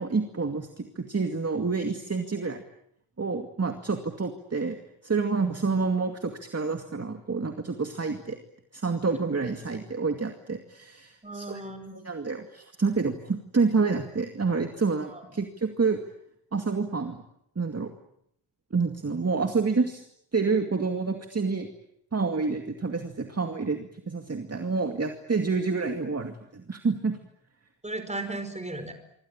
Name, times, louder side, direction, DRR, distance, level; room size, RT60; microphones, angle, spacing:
voice 1, 0.0-2.6 3.2-4.8 5.0-8.4 8.7-11.6 11.9-16.0 16.5-17.2 17.6-17.9 18.7-20.0 20.3-21.7 22.1-27.2, right 4 dB, 30° right, 5 dB, 2.3 m, -28 dB
voice 2, 11.2-12.0 15.1-15.2 27.8-28.9, right 2 dB, 15° right, 9 dB, 5.0 m, -36 dB
26.0 x 25.5 x 8.9 m, 0.73 s
wide cardioid pair, 140°, 49 cm